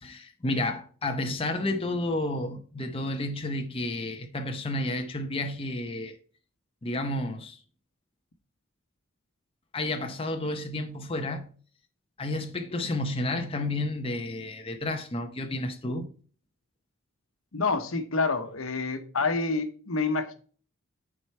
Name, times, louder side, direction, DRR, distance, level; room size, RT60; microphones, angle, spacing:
voice 1, 0.0-6.1 6.8-7.6 9.7-11.5 12.2-16.1, left 2 dB, 25° left, 0.7 m, -31 dB
voice 2, 17.5-20.3, left 3 dB, 75° left, 1.1 m, -28 dB
9.8 x 4.6 x 4.4 m
head